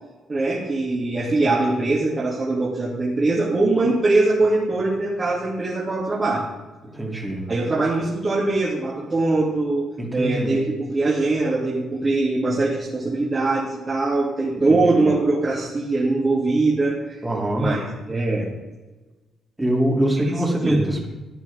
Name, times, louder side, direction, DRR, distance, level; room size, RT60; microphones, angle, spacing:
voice 1, 0.3-6.4 7.5-17.2 17.5-18.5 20.6-20.9, right 2 dB, 35° right, -7 dB, 2.7 m, -22 dB
voice 2, 6.9-7.5 10.0-10.6 14.7-15.1 17.2-17.8 19.6-21.1, right 1 dB, 15° right, -1 dB, 2.8 m, -23 dB
13.5 x 9.9 x 3.6 m, 1.2 s
cardioid pair, 75°, 0 cm